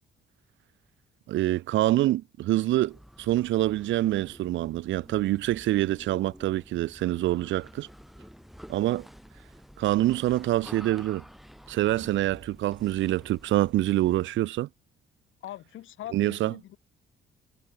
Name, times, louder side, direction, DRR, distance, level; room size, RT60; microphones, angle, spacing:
voice 1, 1.3-7.9 8.7-9.1 9.8-11.2 11.7-14.7 16.1-16.5, right 15 dB, 75° right, 0.5 m, -26 dB
sound 1, 2.7-14.5, equal, ahead, 6.4 m, -50 dB
voice 2, 15.4-16.8, left 13 dB, 80° left, 2.9 m, -41 dB
cardioid pair, 90°, 20 cm